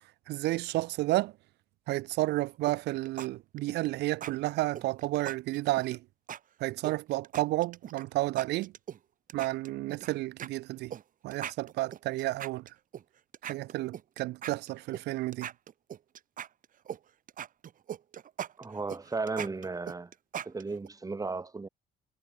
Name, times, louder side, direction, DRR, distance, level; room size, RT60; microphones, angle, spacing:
voice 1, 0.3-1.3 1.9-6.0 6.6-8.7 9.3-10.9 11.2-12.6 13.4-15.5, right 18 dB, 85° right, 3.6 m, -31 dB
sound 1, 2.7-3.3 3.6-3.9 4.2-4.3 4.7-6.0 6.3-6.4 6.8-8.0 8.4-9.0 9.3-10.1 10.4-10.5 10.9-11.0 11.3-13.0 13.3-15.0 15.3-17.0 17.3-20.9, right 9 dB, 55° right, 6.0 m, -40 dB
voice 2, 18.6-20.1 20.4-21.7, right 3 dB, 20° right, 5.4 m, -35 dB
cardioid pair, 110°, 17 cm